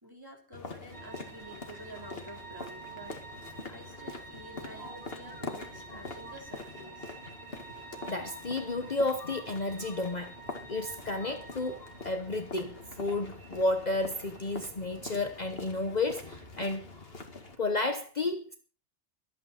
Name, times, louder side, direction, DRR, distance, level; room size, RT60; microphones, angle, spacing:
voice 1, 0.0-7.2, equal, 20° right, 3.8 m, -49 dB
sound 1, 0.5-17.6, left 3 dB, 60° left, 2.2 m, -45 dB
sound 2, 0.9-17.9, right 5 dB, 40° right, 3.4 m, -50 dB
voice 2, 8.1-10.4 10.7-17.1 17.6-18.6, left 2 dB, 40° left, 1.2 m, -32 dB
25.0 x 8.8 x 4.3 m
omnidirectional pair, 1.1 m